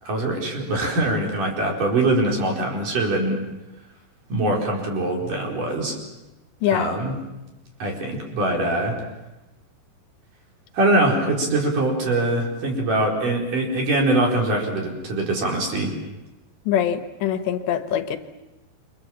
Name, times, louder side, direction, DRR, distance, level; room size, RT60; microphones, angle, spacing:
voice 1, 0.0-3.4 4.3-6.0 6.7-7.2 7.8-9.0 10.7-16.0, right 2 dB, 50° right, 0 dB, 6.0 m, -23 dB
voice 2, 16.7-18.2, left 10 dB, 80° left, 9 dB, 3.4 m, -23 dB
29.0 x 25.0 x 7.5 m, 0.99 s
omnidirectional pair, 5.1 m